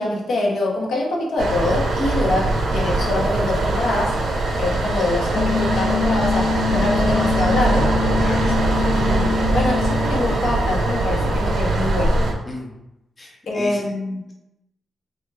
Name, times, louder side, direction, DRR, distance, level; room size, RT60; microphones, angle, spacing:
voice 1, 0.0-4.2 4.6-7.9 8.4-12.2 13.5-14.2, left 2 dB, 70° left, -3 dB, 0.8 m, -24 dB
sound 1, 1.4-12.3, right 2 dB, 65° right, 0.6 m, -21 dB
sound 2, 4.3-11.2, left 1 dB, 45° left, 1.3 m, -40 dB
sound 3, 5.3-10.3, left 5 dB, 85° left, 1.3 m, -25 dB
voice 2, 12.5-12.8 13.2-13.8, left 2 dB, 20° left, -2 dB, 0.4 m, -34 dB
3.2 x 2.3 x 3.3 m, 0.89 s
wide cardioid pair, 145°, 0 cm